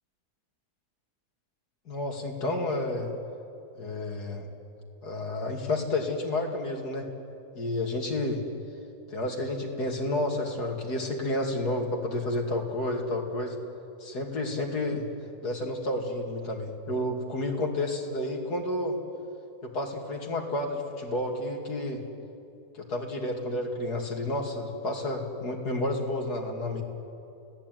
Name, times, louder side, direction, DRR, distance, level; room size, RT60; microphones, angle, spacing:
voice 1, 1.9-3.1 3.7-4.5 5.0-7.1 7.5-8.4 9.1-13.5 14.0-15.0 15.4-19.0 19.6-22.0 22.7-26.8, left 1 dB, 80° left, 2 dB, 3.3 m, -30 dB
29.5 x 17.5 x 9.5 m, 2.8 s
omnidirectional pair, 1.7 m